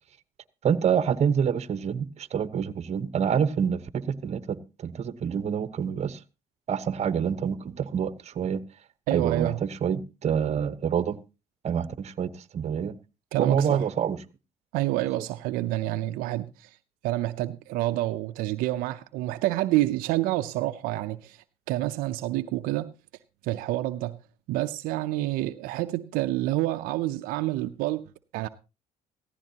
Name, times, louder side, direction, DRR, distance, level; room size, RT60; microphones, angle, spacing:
voice 1, 0.6-6.2 6.7-8.6 9.1-11.2 11.6-13.0 13.4-14.2, right 7 dB, 50° right, 1.0 m, -27 dB
voice 2, 9.1-9.6 13.3-13.9 14.7-16.8 17.0-22.9 23.4-24.2 24.5-28.5, right 16 dB, 85° right, 0.6 m, -28 dB
16.5 x 15.0 x 2.9 m
supercardioid pair, 75°, 14 cm